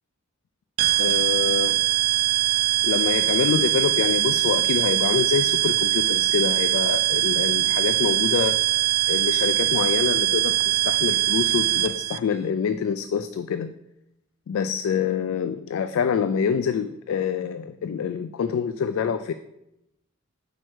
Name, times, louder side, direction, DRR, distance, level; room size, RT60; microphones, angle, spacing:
sound 1, 0.8-12.2, right 16 dB, 85° right, 0.4 m, -22 dB
voice 1, 1.0-1.8 2.8-8.6 9.1-13.7 14.5-19.3, left 7 dB, 75° left, 11 dB, 0.3 m, -26 dB
4.7 x 4.5 x 6.0 m, 0.86 s
head